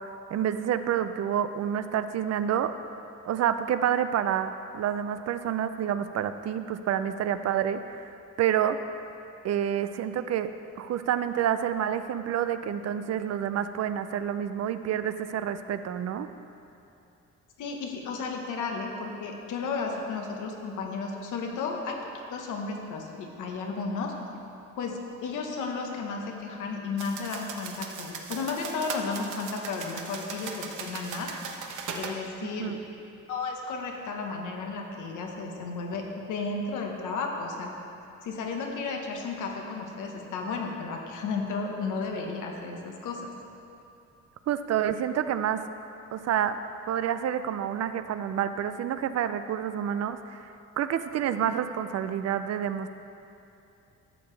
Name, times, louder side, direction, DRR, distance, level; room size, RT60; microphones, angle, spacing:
voice 1, 0.0-2.7 3.2-8.1 8.4-8.8 9.4-10.5 10.8-16.3 32.6-32.8 44.5-45.6 46.1-46.6 46.9-50.4 50.8-52.9, right 9 dB, 60° right, 11 dB, 0.5 m, -28 dB
voice 2, 17.6-22.0 22.3-24.1 24.8-31.3 31.9-32.8 33.3-37.7 38.2-43.3, left 4 dB, 80° left, 2 dB, 1.1 m, -33 dB
sound 1, 27.0-32.2, right 5 dB, 80° right, 0.8 m, -38 dB
12.0 x 6.8 x 3.3 m, 2.8 s
cardioid pair, 90°, 30 cm